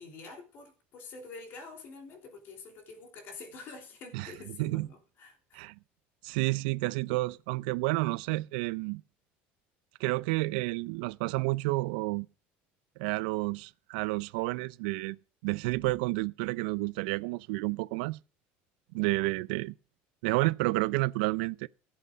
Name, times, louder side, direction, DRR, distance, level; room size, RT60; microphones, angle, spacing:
voice 1, 0.0-5.6 18.9-19.2, left 4 dB, 45° left, 3.2 m, -47 dB
voice 2, 6.2-9.0 10.0-12.3 13.0-15.2 15.4-18.2 18.9-19.7 20.2-21.7, right 22 dB, 90° right, 0.5 m, -30 dB
15.0 x 7.8 x 5.1 m
cardioid pair, 150°, 5 cm